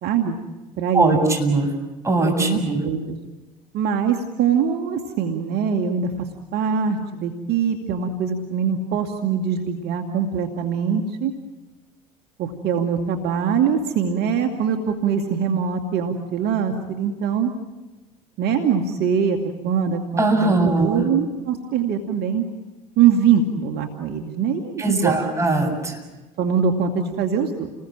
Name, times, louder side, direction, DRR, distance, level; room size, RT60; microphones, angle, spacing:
voice 1, 0.0-0.4 0.8-1.4 2.2-3.2 3.7-11.3 12.4-17.5 18.4-19.4 19.6-22.4 23.0-25.2 26.4-27.7, right 7 dB, 55° right, 4 dB, 2.3 m, -23 dB
voice 2, 0.9-1.7 2.0-2.8 20.2-21.1 24.8-26.0, right 2 dB, 15° right, 3 dB, 7.6 m, -20 dB
30.0 x 21.0 x 7.6 m, 1.1 s
hypercardioid pair, 75°, 20 cm